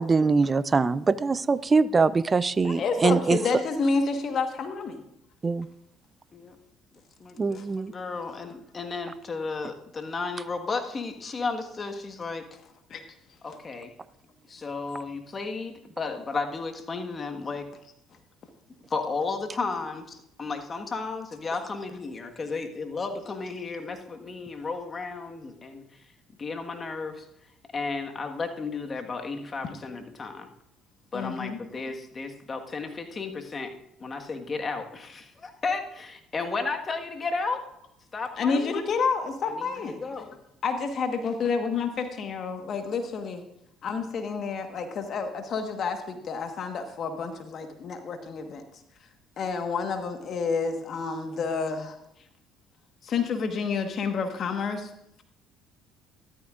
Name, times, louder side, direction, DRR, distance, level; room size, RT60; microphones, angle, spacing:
voice 1, 0.0-3.4 5.4-5.7 7.4-7.9, right 4 dB, 30° right, 18 dB, 0.5 m, -23 dB
voice 2, 2.6-5.0 12.9-13.0 31.1-31.6 38.4-40.0 40.6-43.4 43.8-48.6 49.4-52.0 53.0-54.9, left 5 dB, 55° left, 6 dB, 1.4 m, -29 dB
voice 3, 7.2-12.5 13.4-13.9 14.5-17.7 18.9-26.0 26.4-27.2 27.7-30.5 31.1-33.7 34.0-37.6 38.1-38.7 39.4-39.7 40.0-40.3, left 4 dB, 35° left, 4 dB, 1.5 m, -33 dB
14.0 x 12.5 x 2.5 m, 0.77 s
supercardioid pair, 70°, 0 cm